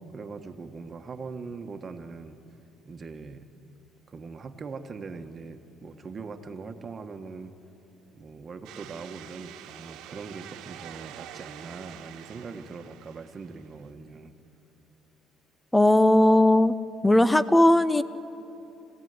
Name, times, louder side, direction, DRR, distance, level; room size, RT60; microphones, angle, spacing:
voice 1, 0.1-2.4 2.8-3.5 4.1-7.5 8.1-14.3, right 4 dB, 35° right, 7 dB, 1.4 m, -41 dB
sound 1, 8.6-13.8, right 11 dB, 85° right, 1.4 m, -46 dB
voice 2, 15.7-16.8 17.0-18.0, left 1 dB, 5° left, 15 dB, 0.8 m, -18 dB
25.5 x 16.0 x 9.6 m, 2.9 s
cardioid pair, 105°, 0 cm